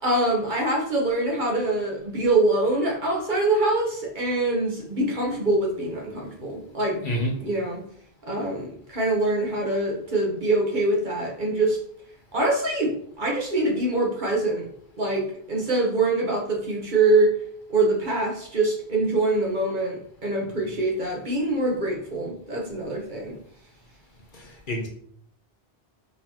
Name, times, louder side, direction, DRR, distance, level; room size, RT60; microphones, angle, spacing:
voice 1, 0.0-7.0 7.4-7.8 8.2-11.8 12.3-14.7 15.0-17.3 17.7-23.4, right 2 dB, 50° right, -1 dB, 1.1 m, -24 dB
voice 2, 24.3-24.9, equal, 55° left, 1 dB, 1.0 m, -28 dB
4.0 x 3.7 x 2.9 m, 0.63 s
omnidirectional pair, 1.1 m